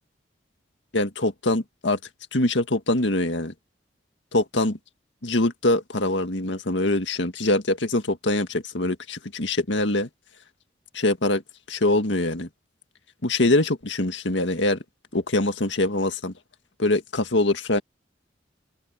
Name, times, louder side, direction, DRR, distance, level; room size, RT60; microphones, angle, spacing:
voice 1, 0.9-2.0 2.3-3.5 4.3-4.8 5.2-10.1 10.9-11.4 11.7-12.5 13.2-14.8 15.1-16.3 16.8-17.8, left 2 dB, 80° left, 1.9 m, -23 dB
head